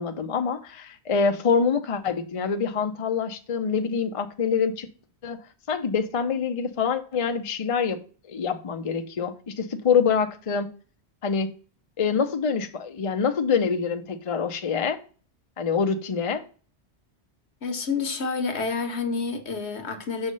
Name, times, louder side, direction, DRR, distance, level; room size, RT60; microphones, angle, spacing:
voice 1, 0.0-4.9 5.2-5.4 5.7-8.0 8.3-10.7 11.2-11.5 12.0-15.0 15.6-16.4, left 6 dB, 40° left, 0.6 m, -25 dB
voice 2, 17.6-20.3, left 4 dB, 70° left, 1.4 m, -28 dB
6.4 x 3.5 x 5.2 m
omnidirectional pair, 1.1 m